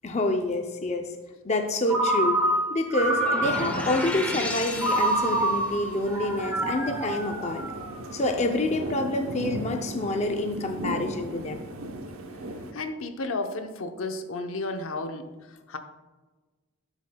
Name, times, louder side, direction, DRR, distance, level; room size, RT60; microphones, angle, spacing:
voice 1, 0.0-1.1 1.4-2.4 2.7-7.6 8.1-11.7, left 2 dB, 30° left, 5 dB, 0.5 m, -27 dB
Ringtone, 1.9-4.0 4.8-8.1, right 1 dB, 15° right, 1.7 m, -27 dB
sound 1, 3.0-5.8, left 1 dB, 5° left, 0.8 m, -34 dB
sound 2, 3.4-12.7, right 1 dB, 90° right, 0.9 m, -37 dB
voice 2, 12.7-15.8, left 2 dB, 75° left, 6 dB, 0.8 m, -33 dB
12.0 x 7.1 x 2.2 m, 1.2 s
head